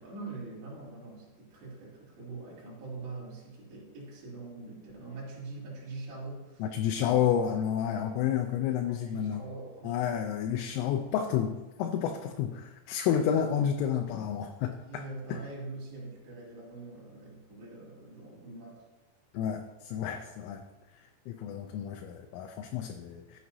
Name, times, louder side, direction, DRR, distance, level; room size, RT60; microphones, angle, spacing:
voice 1, 0.0-6.7 7.0-7.2 7.9-8.3 8.8-10.2 13.2-13.4 14.9-18.8, right 3 dB, 60° right, -7 dB, 5.3 m, -43 dB
voice 2, 6.6-9.4 9.8-15.0 15.3-15.4 19.3-20.6 20.9-23.4, left 9 dB, 85° left, 4 dB, 3.1 m, -30 dB
14.0 x 8.6 x 2.8 m, 1.1 s
omnidirectional pair, 5.8 m